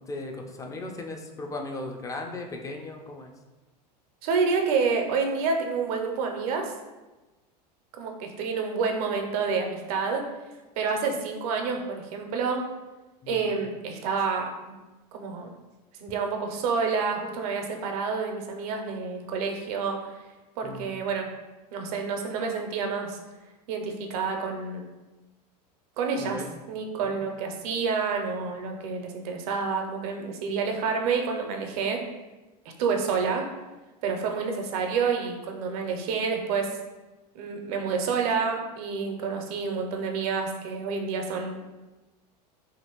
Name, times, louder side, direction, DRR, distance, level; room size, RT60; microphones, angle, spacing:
voice 1, 0.0-3.3 13.2-13.6 20.6-21.0 26.2-26.5 27.0-27.2, left 2 dB, 15° left, 3 dB, 0.4 m, -37 dB
voice 2, 4.2-6.7 8.0-10.2 10.8-12.7 13.3-14.8 15.1-15.5 16.0-20.1 20.6-21.3 21.7-23.2 23.7-24.9 26.0-26.4 26.7-32.0 32.8-33.4 34.0-36.8 37.3-41.6, right 5 dB, 60° right, 3 dB, 0.6 m, -28 dB
2.8 x 2.6 x 3.0 m, 1.1 s
hypercardioid pair, 90°, 21 cm